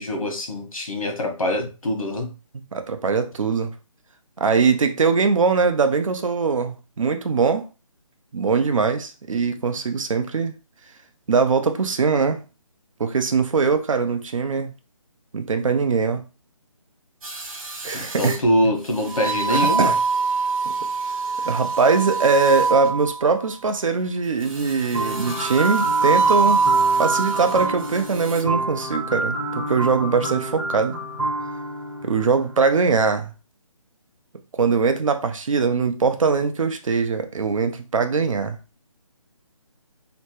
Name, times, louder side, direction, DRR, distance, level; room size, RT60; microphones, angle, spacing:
voice 1, 0.0-2.3 17.9-19.9, left 1 dB, 90° left, 1.1 m, -24 dB
voice 2, 2.7-3.7 4.4-7.7 8.3-10.5 11.3-12.4 13.0-14.7 15.3-16.2 17.8-18.4 19.5-20.0 20.7-20.8 21.4-26.6 27.0-30.9 32.0-33.3 34.6-38.6, right 5 dB, 70° right, 0.6 m, -21 dB
sound 1, 17.2-18.4 19.0-23.3 24.5-27.7 28.1-28.4, right 4 dB, 85° right, 0.9 m, -23 dB
sound 2, 24.9-32.8, right 1 dB, 5° right, 0.4 m, -29 dB
2.9 x 2.2 x 2.9 m
figure-of-eight pair, 160°, 17 cm